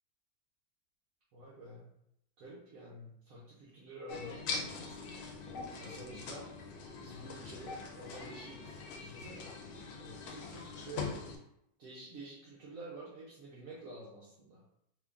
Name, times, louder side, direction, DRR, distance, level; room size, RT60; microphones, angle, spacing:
voice 1, 1.3-1.9 2.4-5.2 5.8-6.5 7.0-9.5 10.0-11.2 11.8-14.6, right 2 dB, 65° right, -7 dB, 1.2 m, -49 dB
sound 1, 4.1-11.4, left 4 dB, 90° left, 1.1 m, -42 dB
2.9 x 2.6 x 3.5 m, 0.76 s
omnidirectional pair, 1.6 m